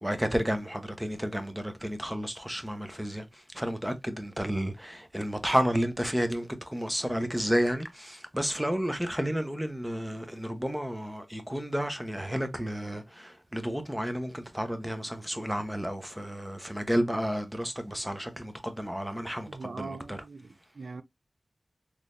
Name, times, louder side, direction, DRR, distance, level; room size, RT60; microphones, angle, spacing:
voice 1, 0.0-3.2 3.5-20.2, equal, 10° right, 0.8 m, -31 dB
voice 2, 19.5-21.0, right 4 dB, 75° right, 0.4 m, -41 dB
3.8 x 3.1 x 2.5 m
wide cardioid pair, 65°, 0 cm